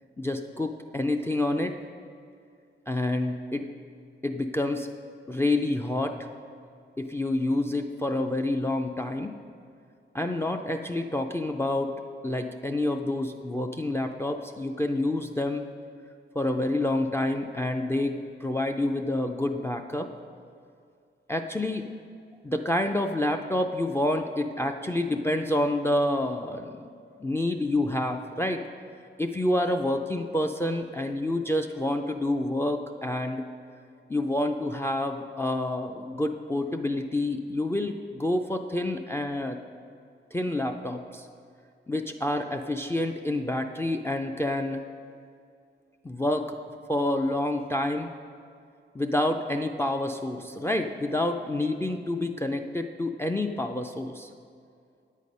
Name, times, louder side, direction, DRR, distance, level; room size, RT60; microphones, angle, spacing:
voice 1, 0.2-1.7 2.9-3.7 4.2-4.9 5.3-6.2 7.0-9.3 10.1-11.9 12.2-15.7 16.4-20.1 21.3-21.9 22.4-26.9 27.2-28.6 29.2-33.4 34.1-39.6 40.3-41.3 41.9-44.8 46.0-46.5 46.9-48.1 48.9-54.3, left 1 dB, 10° left, 4 dB, 0.3 m, -28 dB
9.0 x 8.3 x 5.2 m, 2.3 s
wide cardioid pair, 165°, 20 cm